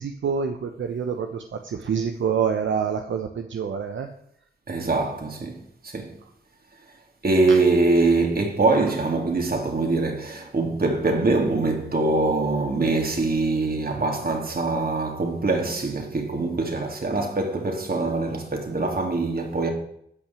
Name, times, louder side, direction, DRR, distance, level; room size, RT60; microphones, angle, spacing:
voice 1, 0.0-4.1 7.5-7.6, right 6 dB, 75° right, 1.0 m, -27 dB
voice 2, 4.7-6.1 7.2-19.7, right 3 dB, 50° right, 3.3 m, -23 dB
13.0 x 5.8 x 9.0 m
cardioid pair, 45°, 20 cm